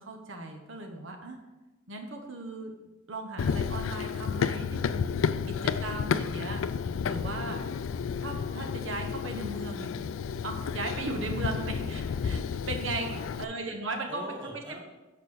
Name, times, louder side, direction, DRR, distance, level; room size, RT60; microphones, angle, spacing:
voice 1, 0.0-1.4 1.9-2.7 3.1-5.1 5.5-5.6 5.8-6.6 7.0-7.6 8.2-9.9 10.4-13.1 13.4-14.3, right 2 dB, 70° right, 3 dB, 0.9 m, -37 dB
Run, 3.4-13.4, left 6 dB, 85° left, 0.3 m, -31 dB
voice 2, 5.2-5.6 7.3-7.5 13.0-13.5 14.1-14.8, equal, 25° right, 1 dB, 1.3 m, -43 dB
6.7 x 4.9 x 6.9 m, 1.1 s
head